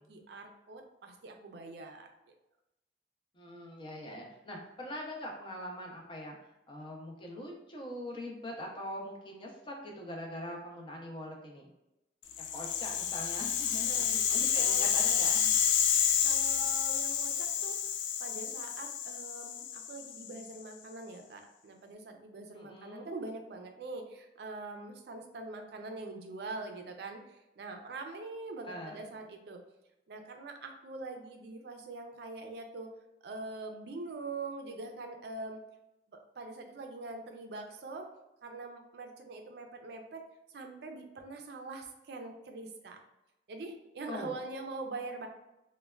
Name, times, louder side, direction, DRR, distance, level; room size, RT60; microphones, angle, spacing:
voice 1, 0.1-2.1 13.8-14.1 14.6-14.9 16.2-17.8 18.2-29.6 30.1-32.9 33.2-35.6 36.1-38.1 38.4-40.3 40.5-43.0 43.5-45.3, right 3 dB, 65° right, 4 dB, 0.4 m, -43 dB
voice 2, 3.3-6.4 6.7-11.7 12.4-15.6 22.5-23.1 28.7-29.0 44.1-44.3, equal, 30° left, 0 dB, 0.5 m, -43 dB
Rattle (instrument), 12.3-20.5, left 8 dB, 90° left, 0.3 m, -30 dB
3.2 x 2.1 x 2.2 m, 0.91 s
head